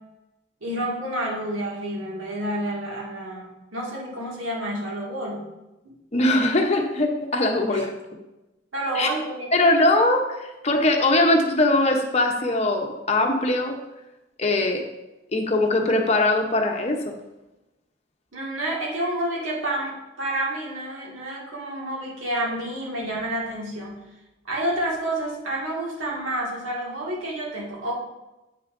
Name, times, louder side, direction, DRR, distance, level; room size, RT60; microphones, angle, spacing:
voice 1, 0.6-5.5 7.7-7.9 8.7-9.5 18.3-24.0 24.4-27.9, right 1 dB, 85° right, -4 dB, 2.0 m, -29 dB
voice 2, 6.1-7.9 8.9-9.1 9.5-13.8 14.4-14.8 15.3-17.1, left 2 dB, 35° left, 3 dB, 0.8 m, -21 dB
8.1 x 6.2 x 2.6 m, 1.0 s
head